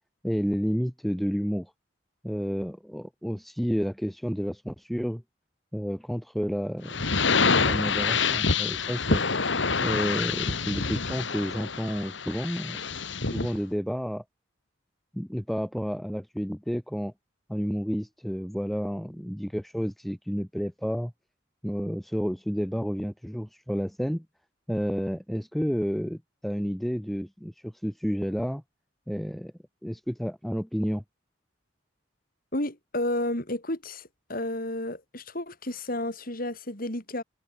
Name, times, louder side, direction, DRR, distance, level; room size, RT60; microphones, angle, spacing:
voice 1, 0.2-1.7 2.2-5.2 5.7-7.0 7.6-9.2 9.8-12.8 13.3-14.2 15.1-17.1 17.5-21.1 21.6-24.2 24.7-28.6 29.1-29.5 29.8-31.0, equal, ahead, 0.6 m, -30 dB
sound 1, 6.9-13.6, left 4 dB, 70° left, 2.1 m, -26 dB
voice 2, 32.5-37.2, left 1 dB, 50° left, 5.5 m, -31 dB
head